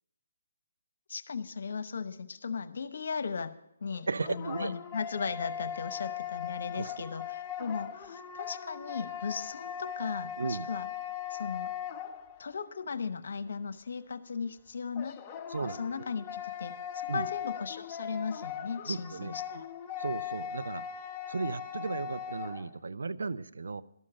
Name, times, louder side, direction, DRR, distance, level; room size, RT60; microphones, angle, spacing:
voice 1, 1.1-3.5 3.8-10.9 11.3-11.7 12.4-15.2 15.6-19.6, left 5 dB, 65° left, 12 dB, 0.9 m, -37 dB
sound 1, 3.9-12.6 14.9-22.7, left 9 dB, 25° left, 0.7 m, -39 dB
voice 2, 4.1-4.7 6.7-7.0 10.4-10.7 15.5-16.0 17.1-17.3 18.9-19.3 20.0-20.9 21.3-23.8, right 4 dB, 80° right, 15 dB, 0.6 m, -35 dB
12.5 x 6.5 x 8.7 m, 0.79 s
hypercardioid pair, 155°, 0 cm